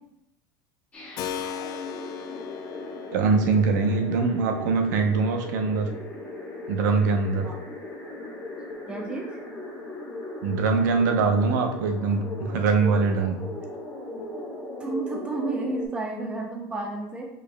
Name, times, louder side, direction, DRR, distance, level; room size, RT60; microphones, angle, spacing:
sound 1, 0.9-15.9, left 2 dB, 15° left, 1.0 m, -38 dB
Keyboard (musical), 1.2-9.8, left 8 dB, 40° left, 0.3 m, -41 dB
voice 1, 3.1-5.9 6.7-7.5 10.4-13.5, right 4 dB, 80° right, 4 dB, 0.7 m, -23 dB
voice 2, 8.9-9.4 14.8-17.3, right 3 dB, 10° right, 0 dB, 0.8 m, -31 dB
4.9 x 4.8 x 2.2 m, 0.83 s
supercardioid pair, 150°, 10 cm